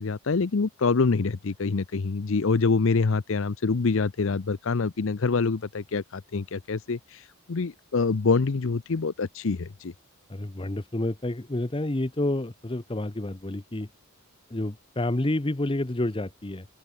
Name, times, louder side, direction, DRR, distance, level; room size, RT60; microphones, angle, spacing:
voice 1, 0.0-9.9, left 4 dB, 60° left, 0.6 m, -26 dB
voice 2, 10.3-13.9 14.5-16.7, left 1 dB, 25° left, 0.8 m, -29 dB
open air
head